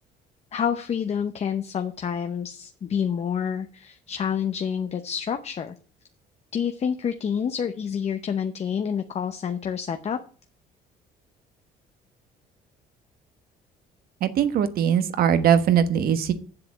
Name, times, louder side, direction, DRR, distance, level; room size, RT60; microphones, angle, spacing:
voice 1, 0.5-5.7 6.5-10.2, left 7 dB, 40° left, 8 dB, 0.8 m, -28 dB
voice 2, 14.2-16.3, right 8 dB, 60° right, 11 dB, 1.2 m, -21 dB
7.7 x 7.7 x 7.4 m, 0.41 s
cardioid pair, 110°, 17 cm